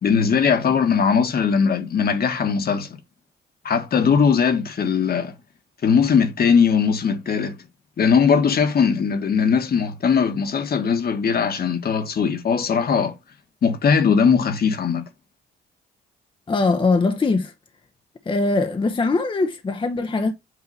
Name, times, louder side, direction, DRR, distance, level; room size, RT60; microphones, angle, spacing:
voice 1, 0.0-2.9 3.6-5.3 5.8-7.6 8.0-13.1 13.6-15.0, left 6 dB, 50° left, 1.4 m, -19 dB
voice 2, 16.5-17.5 18.3-20.3, left 3 dB, 25° left, 0.7 m, -21 dB
8.1 x 2.8 x 5.4 m
cardioid pair, 90°, 20 cm